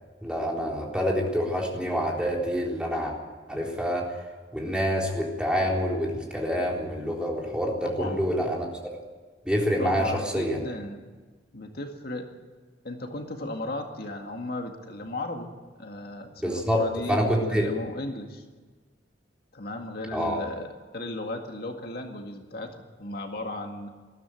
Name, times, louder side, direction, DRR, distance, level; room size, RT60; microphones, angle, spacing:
voice 1, 0.2-3.2 3.5-4.1 4.5-8.7 9.4-10.6 16.4-16.8 17.1-17.7 20.1-20.4, equal, 5° right, -1 dB, 3.8 m, -27 dB
voice 2, 7.8-8.2 9.8-11.1 11.5-12.3 12.8-15.5 15.8-18.4 19.5-20.7 20.9-23.9, left 2 dB, 55° left, 4 dB, 2.0 m, -36 dB
20.5 x 14.5 x 9.0 m, 1.4 s
head